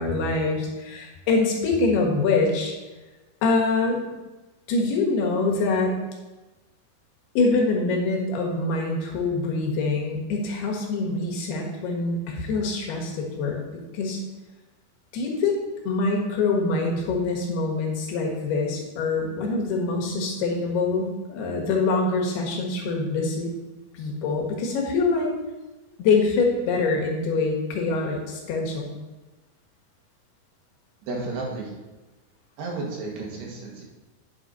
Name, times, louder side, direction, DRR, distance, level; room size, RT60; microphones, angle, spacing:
voice 1, 0.0-2.7 3.4-4.0 4.7-5.9 7.3-13.6 13.9-14.2 15.1-15.6 15.8-23.5 23.9-25.3 26.0-29.0, left 3 dB, 80° left, 0 dB, 3.4 m, -24 dB
voice 2, 31.0-31.7 32.6-33.8, right 3 dB, 90° right, -1 dB, 3.7 m, -32 dB
9.3 x 6.7 x 3.9 m, 1.2 s
omnidirectional pair, 4.5 m